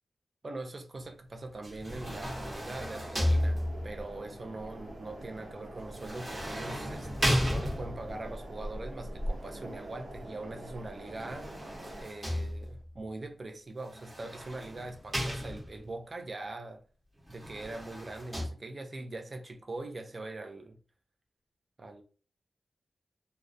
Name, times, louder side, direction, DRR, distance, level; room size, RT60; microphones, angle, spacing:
voice 1, 0.4-11.5 12.0-16.8 17.3-20.8 21.8-22.0, right 2 dB, 40° right, 0.4 m, -42 dB
sound 1, 1.6-4.1 5.9-8.2 11.1-12.9 13.9-15.9 17.3-18.5, equal, 25° right, 0.8 m, -33 dB
sound 2, 2.1-12.0, right 1 dB, 85° right, 0.8 m, -43 dB
2.3 x 2.1 x 2.6 m
wide cardioid pair, 95°, 0 cm